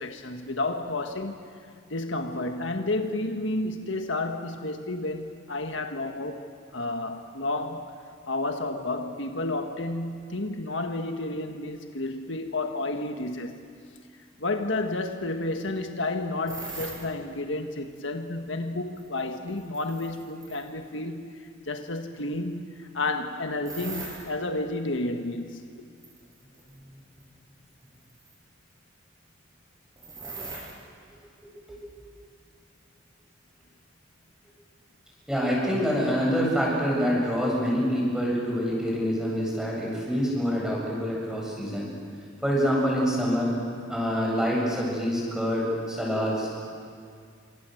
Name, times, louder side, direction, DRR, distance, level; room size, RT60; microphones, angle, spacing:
voice 1, 0.0-1.4 1.9-6.4 6.7-7.9 8.3-13.7 14.4-25.6, left 2 dB, 70° left, 5 dB, 1.6 m, -31 dB
sound 1, 16.5-17.0 19.0-20.7 23.6-24.2 26.0-26.7 27.2-27.3 28.1-28.3 30.0-30.7, right 3 dB, 20° right, 6.8 m, -39 dB
voice 2, 31.7-32.1 35.3-41.9 42.4-43.6 43.9-46.6, equal, 5° right, -3 dB, 7.7 m, -26 dB
29.0 x 26.0 x 7.9 m, 2.2 s
head